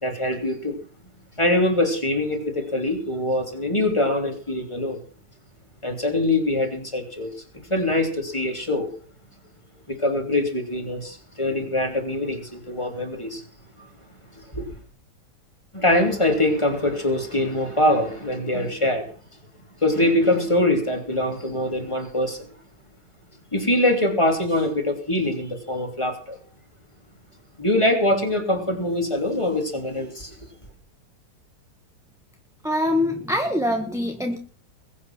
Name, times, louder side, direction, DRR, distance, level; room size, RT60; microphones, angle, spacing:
voice 1, 0.0-0.8 1.4-5.0 5.8-7.3 7.7-8.9 9.9-13.4 13.8-13.9 14.3-14.7 15.7-19.1 19.8-22.4 23.5-26.4 27.6-30.4, left 1 dB, 15° left, 3 dB, 3.2 m, -23 dB
voice 2, 32.6-34.4, left 1 dB, ahead, 4 dB, 1.5 m, -24 dB
21.5 x 8.6 x 6.1 m, 0.42 s
omnidirectional pair, 1.8 m